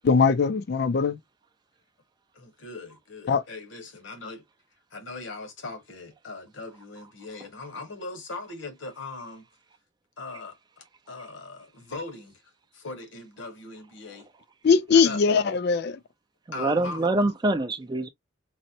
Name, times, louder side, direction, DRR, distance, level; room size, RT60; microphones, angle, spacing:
voice 1, 0.0-1.2 3.3-3.4 14.6-16.0, left 5 dB, 55° left, 0.4 m, -21 dB
voice 2, 2.3-4.4 4.9-9.4 10.2-12.3 12.7-14.3 14.9-15.2 16.5-17.1, left 3 dB, 70° left, 1.1 m, -40 dB
voice 3, 16.5-18.1, right 2 dB, 20° right, 0.4 m, -25 dB
4.0 x 2.1 x 2.6 m
head